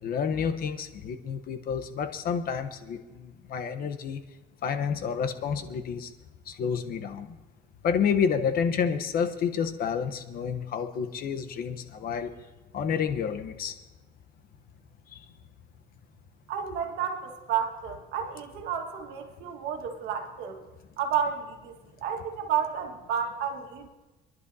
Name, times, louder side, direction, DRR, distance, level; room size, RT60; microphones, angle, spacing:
voice 1, 0.0-4.2 4.6-6.1 6.5-7.4 7.8-12.3 12.7-13.8 15.1-15.2, left 7 dB, 60° left, 7 dB, 1.0 m, -29 dB
voice 2, 16.5-20.6 21.0-23.9, right 8 dB, 80° right, 4 dB, 1.7 m, -31 dB
26.5 x 11.0 x 2.8 m, 1.2 s
cardioid pair, 110°, 17 cm